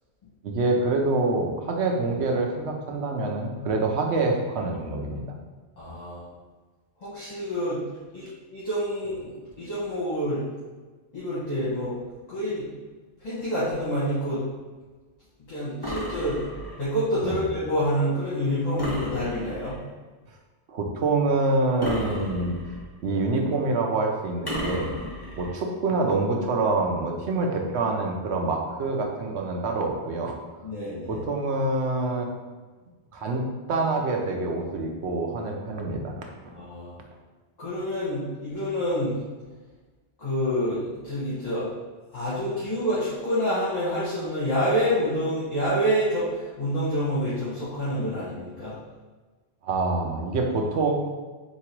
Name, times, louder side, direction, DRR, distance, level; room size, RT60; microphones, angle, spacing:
voice 1, 0.4-5.4 17.2-17.4 20.7-22.5 23.0-25.0 25.4-30.3 31.1-32.3 33.1-36.1 49.6-50.9, right 3 dB, 85° right, 1 dB, 1.0 m, -26 dB
voice 2, 5.8-6.3 7.0-7.8 8.1-10.4 11.1-11.9 12.3-12.6 13.2-14.4 15.5-16.4 16.8-19.8 30.6-31.2 36.5-37.0 37.6-39.1 40.2-41.7 42.1-48.8, equal, 40° left, -11 dB, 1.4 m, -27 dB
sound 1, 15.8-16.9 18.8-19.8 21.8-22.9 24.5-25.5, left 1 dB, 20° left, 1.1 m, -33 dB
3.7 x 3.0 x 4.5 m, 1.3 s
omnidirectional pair, 1.1 m